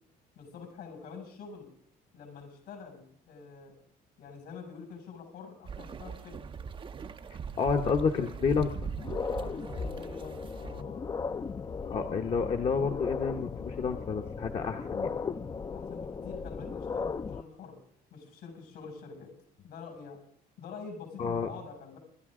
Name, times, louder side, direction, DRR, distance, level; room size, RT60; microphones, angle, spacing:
voice 1, 0.3-1.7 2.1-3.7 4.2-6.4 9.4-11.1 15.5-17.8 18.1-19.3 19.6-20.2 20.6-22.0, left 5 dB, 80° left, 2 dB, 6.3 m, -46 dB
sound 1, 5.6-10.8, right 6 dB, 30° right, 0.6 m, -40 dB
voice 2, 7.3-8.7 11.8-15.1 21.2-21.5, left 5 dB, 40° left, 4 dB, 1.0 m, -30 dB
sound 2, 8.7-17.4, left 5 dB, 25° left, 0.5 m, -37 dB
26.0 x 12.0 x 3.7 m, 0.63 s
cardioid pair, 110°, 17 cm